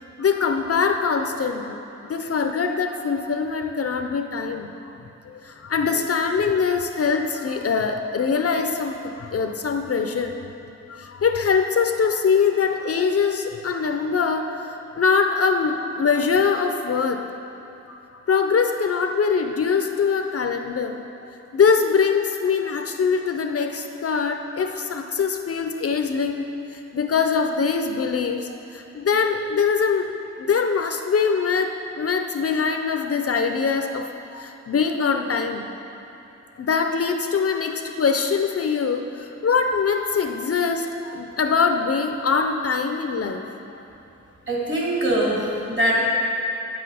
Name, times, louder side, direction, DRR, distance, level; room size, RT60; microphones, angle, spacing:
voice 1, 0.2-4.9 5.2-10.3 10.9-17.2 17.9-18.0 18.3-26.5 26.7-30.1 30.4-35.7 36.6-43.4 43.7-43.8, left 5 dB, 55° left, 5 dB, 0.5 m, -23 dB
voice 2, 44.5-46.0, right 1 dB, 40° right, -4 dB, 2.3 m, -22 dB
9.2 x 7.9 x 4.9 m, 2.9 s
wide cardioid pair, 150°, 29 cm